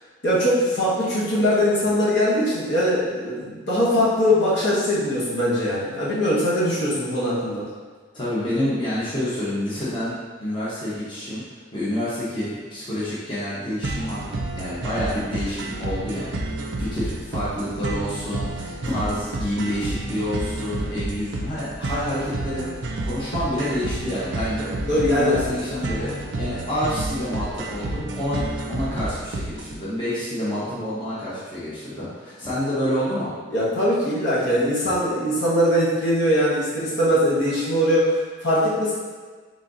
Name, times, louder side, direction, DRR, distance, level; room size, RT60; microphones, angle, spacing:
voice 1, 0.2-7.6 24.9-25.4 30.7-30.8 33.5-38.9, equal, 65° left, -9 dB, 1.3 m, -21 dB
voice 2, 8.1-11.5 11.7-24.7 25.1-26.1 26.4-33.3, left 1 dB, 25° left, -10 dB, 0.9 m, -28 dB
sound 1, 13.8-29.8, right 2 dB, 60° right, 0.5 m, -30 dB
4.2 x 3.7 x 2.6 m, 1.5 s
head